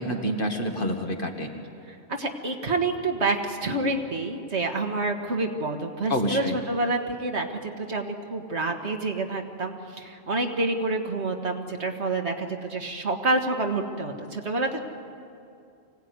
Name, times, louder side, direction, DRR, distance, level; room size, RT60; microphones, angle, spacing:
voice 1, 0.0-1.5 6.1-6.6, equal, 45° left, 3 dB, 2.0 m, -28 dB
voice 2, 2.2-14.8, right 2 dB, 70° right, 3 dB, 2.0 m, -28 dB
24.5 x 17.5 x 9.6 m, 2.5 s
omnidirectional pair, 1.2 m